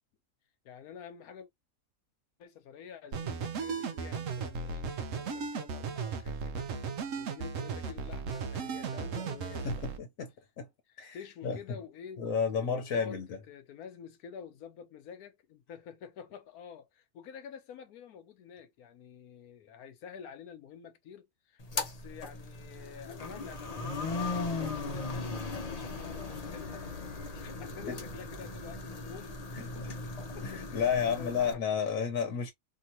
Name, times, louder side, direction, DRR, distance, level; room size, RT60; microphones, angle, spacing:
voice 1, 0.6-1.5 2.4-9.9 10.9-31.6 31.9-32.0 32.3-32.4, left 7 dB, 90° left, 1.2 m, -49 dB
sound 1, 3.1-10.0, right 5 dB, 65° right, 0.9 m, -36 dB
voice 2, 9.6-10.3 10.6-10.7 11.0-11.2 11.4-11.6 12.2-13.3 27.9-28.0 29.7-29.9 30.4-32.5, left 6 dB, 65° left, 1.1 m, -31 dB
sound 2, 21.6-31.5, left 3 dB, 35° left, 0.6 m, -38 dB
2.8 x 2.8 x 2.8 m
omnidirectional pair, 1.5 m